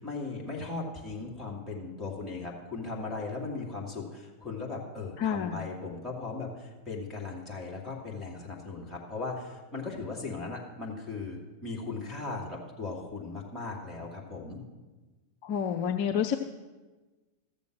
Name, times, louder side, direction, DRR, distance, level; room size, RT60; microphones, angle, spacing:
voice 1, 0.0-14.6, left 3 dB, 10° left, -4 dB, 2.7 m, -38 dB
voice 2, 5.2-5.6 15.4-16.4, left 8 dB, 45° left, 6 dB, 0.6 m, -29 dB
13.5 x 7.0 x 6.3 m, 1.2 s
figure-of-eight pair, 90°, 0 cm